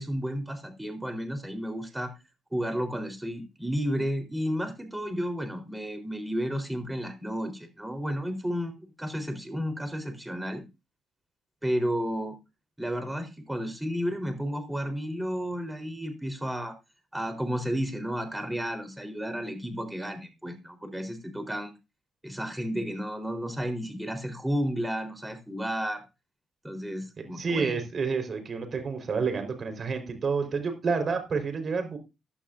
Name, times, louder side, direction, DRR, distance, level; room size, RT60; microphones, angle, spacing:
voice 1, 0.0-2.1 2.5-10.6 11.6-12.3 12.8-16.7 17.1-21.7 22.2-26.0 26.6-27.8, equal, 10° right, 6 dB, 4.0 m, -32 dB
voice 2, 27.2-32.0, right 5 dB, 45° right, 6 dB, 4.5 m, -29 dB
15.5 x 11.5 x 2.6 m, 0.26 s
cardioid pair, 90°, 0 cm